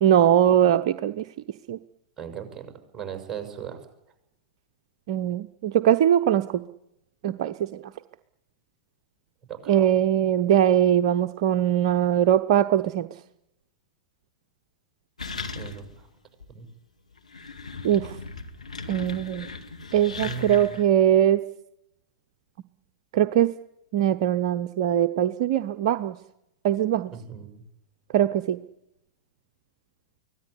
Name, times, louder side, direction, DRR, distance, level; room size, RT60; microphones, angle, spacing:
voice 1, 0.0-1.2 1.7-1.8 5.1-6.4 7.2-7.5 9.7-13.1 17.8-18.1 18.9-19.5 19.9-21.4 23.1-23.5 23.9-26.1 26.6-27.1 28.1-28.6, right 10 dB, 55° right, 9 dB, 0.8 m, -21 dB
voice 2, 2.2-3.8 9.5-9.9 15.5-16.1 16.5-16.7 20.2-20.8 27.1-27.6, right 7 dB, 15° right, 5 dB, 6.5 m, -38 dB
sound 1, 15.2-16.0 16.4-16.5 17.1-20.9, left 4 dB, 80° left, 2.1 m, -38 dB
24.0 x 17.0 x 9.9 m, 0.85 s
figure-of-eight pair, 95°, 4 cm